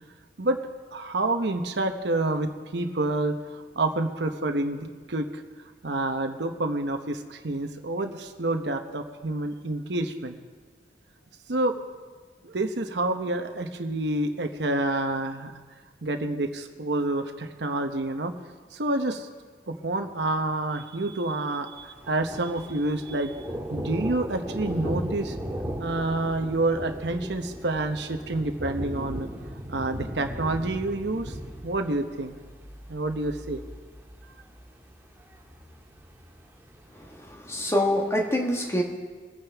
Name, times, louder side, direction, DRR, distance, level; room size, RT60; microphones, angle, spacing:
voice 1, 0.9-3.4 3.7-5.4 5.8-10.4 11.5-11.7 12.4-15.5 16.0-18.3 18.7-19.3 19.7-23.4 23.7-25.4 25.8-29.3 29.7-31.3 31.6-32.3 32.9-33.6, right 2 dB, 65° right, 6 dB, 0.9 m, -28 dB
Thunder, 21.8-37.3, equal, 15° right, 1.6 m, -37 dB
voice 2, 36.9-38.8, left 1 dB, 15° left, 2 dB, 1.4 m, -26 dB
23.0 x 9.1 x 3.5 m, 1.4 s
head